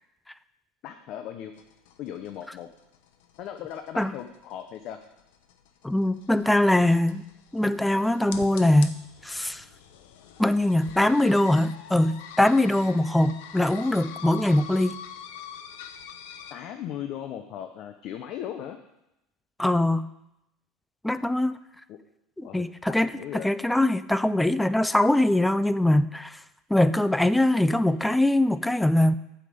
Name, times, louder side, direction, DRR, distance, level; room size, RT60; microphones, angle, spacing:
voice 1, 0.8-1.5 2.0-2.7 3.4-5.0 16.5-18.8 21.9-22.0 22.4-22.6 23.1-23.5, left 10 dB, 45° left, 7 dB, 0.6 m, -37 dB
sound 1, 1.6-16.5, left 8 dB, 85° left, 0.9 m, -45 dB
voice 2, 5.8-7.2 7.5-9.0 9.2-9.6 10.4-15.0 19.6-20.1 21.0-21.6 22.4-26.4 26.7-29.1, left 1 dB, 5° left, 14 dB, 0.3 m, -22 dB
8.5 x 5.7 x 7.9 m, 0.87 s
cardioid pair, 160°, 0 cm